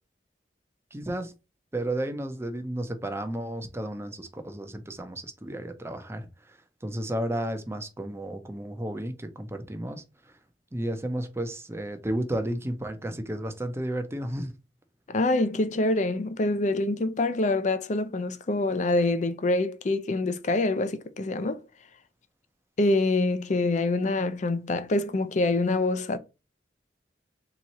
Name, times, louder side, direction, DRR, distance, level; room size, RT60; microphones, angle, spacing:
voice 1, 0.9-1.3 1.7-10.3 10.7-14.5, right 1 dB, 15° right, 0.6 m, -33 dB
voice 2, 15.1-21.6 22.8-26.2, left 2 dB, 40° left, 0.5 m, -25 dB
3.6 x 3.0 x 4.1 m
head